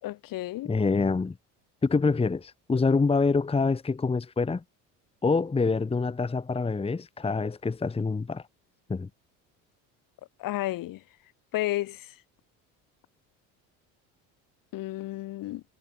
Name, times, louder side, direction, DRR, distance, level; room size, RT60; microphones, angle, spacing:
voice 1, 0.0-0.7 10.4-11.0 11.5-12.1 14.7-15.6, left 16 dB, 60° left, 4.2 m, -32 dB
voice 2, 0.6-1.4 1.8-4.6 5.2-8.4 8.9-9.1, left 4 dB, 15° left, 1.3 m, -26 dB
supercardioid pair, 95°, 37 cm